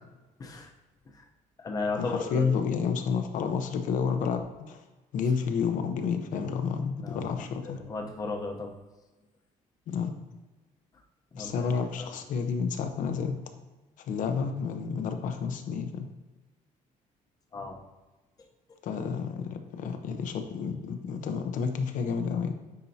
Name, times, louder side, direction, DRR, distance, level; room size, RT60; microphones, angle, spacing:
voice 1, 0.4-0.7 1.1-1.2 1.6-2.6 7.0-8.7 11.3-11.5 12.0-12.1 17.5-17.8, left 3 dB, 25° left, 3 dB, 0.8 m, -35 dB
voice 2, 2.0-4.8 5.1-7.8 9.9-10.1 11.4-13.4 14.0-16.1 18.8-22.5, left 6 dB, 65° left, 7 dB, 0.7 m, -30 dB
9.5 x 4.5 x 2.8 m, 1.2 s
cardioid pair, 165°, 15 cm